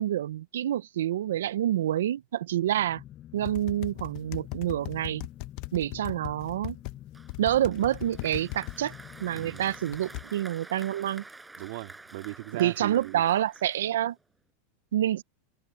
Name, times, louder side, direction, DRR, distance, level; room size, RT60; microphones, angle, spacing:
voice 1, 0.0-3.0 3.3-5.3 5.7-6.8 7.4-8.9 9.2-11.2 12.6-14.2 14.9-15.2, right 12 dB, 90° right, 0.4 m, -27 dB
sound 1, 2.4-10.8, left 12 dB, 35° left, 7.6 m, -48 dB
sound 2, 3.4-7.0 7.3-8.8 9.9-10.2, left 22 dB, 50° left, 0.8 m, -38 dB
Applause, 7.1-14.3, right 2 dB, 10° right, 7.0 m, -49 dB
voice 2, 9.3-9.7 11.6-13.2, right 20 dB, 65° right, 2.3 m, -38 dB
supercardioid pair, 140°, 0 cm